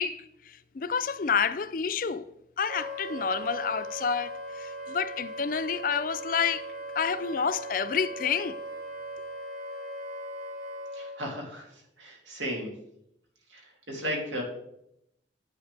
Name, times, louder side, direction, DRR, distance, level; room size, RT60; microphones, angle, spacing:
voice 1, 0.0-2.2 2.6-6.6 6.9-8.6, left 6 dB, 50° left, 0.4 m, -29 dB
Wind instrument woodwind instrument, 2.7-11.2, right 1 dB, 55° right, 2.3 m, -39 dB
voice 2, 10.9-12.7 13.5-14.4, equal, 90° right, 3.0 m, -35 dB
11.0 x 8.0 x 3.4 m
head